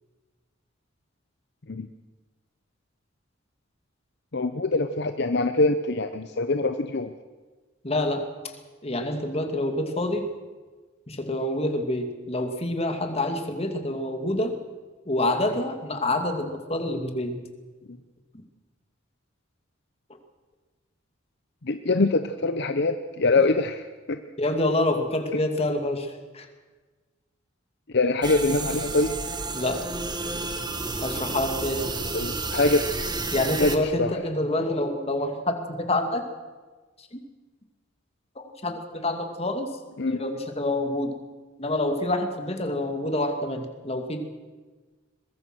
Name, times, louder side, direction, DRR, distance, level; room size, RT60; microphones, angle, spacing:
voice 1, 4.3-7.1 17.9-18.0 21.6-24.2 27.9-29.1 32.1-32.9 33.6-34.1 40.0-40.2, left 2 dB, 60° left, 8 dB, 0.9 m, -24 dB
voice 2, 7.8-8.5 8.8-10.3 11.1-14.6 15.1-17.4 18.3-18.4 24.4-26.5 29.5-29.8 30.3-32.0 33.3-36.2 37.0-37.2 38.4-39.7 40.1-41.2 41.6-44.2, left 1 dB, 30° left, 5 dB, 2.5 m, -27 dB
sound 1, 28.2-33.8, right 3 dB, 20° right, 1.6 m, -31 dB
22.5 x 21.5 x 6.3 m, 1.3 s
head